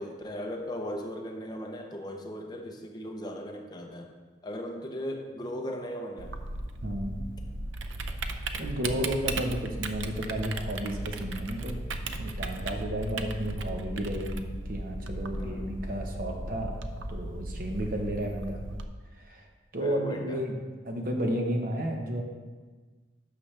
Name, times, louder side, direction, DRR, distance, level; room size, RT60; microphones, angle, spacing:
voice 1, 0.0-4.1 4.4-6.3 15.3-15.8 19.8-20.4, equal, 20° left, 2 dB, 0.7 m, -37 dB
Typing, 6.2-18.8, right 2 dB, 90° right, 0.6 m, -36 dB
voice 2, 6.8-7.3 8.6-11.8 12.1-16.8 17.1-18.6 19.1-19.5 19.7-20.5 20.8-22.2, equal, 50° right, 2 dB, 1.0 m, -32 dB
11.5 x 6.2 x 3.3 m, 1.4 s
head